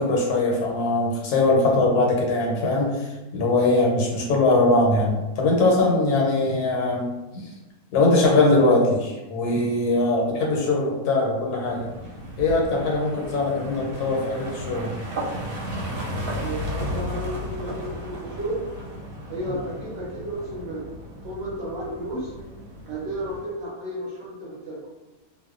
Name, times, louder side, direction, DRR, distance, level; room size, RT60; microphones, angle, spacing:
voice 1, 0.0-7.1 7.3-7.5 7.9-11.9 12.4-15.0, left 2 dB, 85° left, -1 dB, 1.2 m, -21 dB
sound 1, 11.6-23.5, equal, 85° right, 1.2 m, -34 dB
voice 2, 16.4-18.7 19.3-20.9 21.2-22.3 22.9-24.8, right 1 dB, 60° right, -6 dB, 0.8 m, -32 dB
2.5 x 2.1 x 2.4 m, 1.1 s
omnidirectional pair, 1.6 m